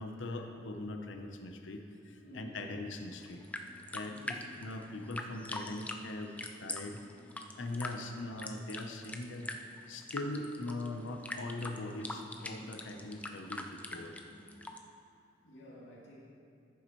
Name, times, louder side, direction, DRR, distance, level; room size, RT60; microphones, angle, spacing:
voice 1, 0.0-3.4 3.9-7.0 7.6-9.5 9.9-14.2, left 2 dB, 80° left, 5 dB, 0.8 m, -41 dB
voice 2, 2.2-2.5 4.1-4.5 15.4-16.2, equal, 65° left, -6 dB, 2.5 m, -52 dB
sound 1, 3.1-14.8, left 1 dB, 5° left, 0.3 m, -44 dB
14.0 x 7.2 x 3.1 m, 2.4 s
head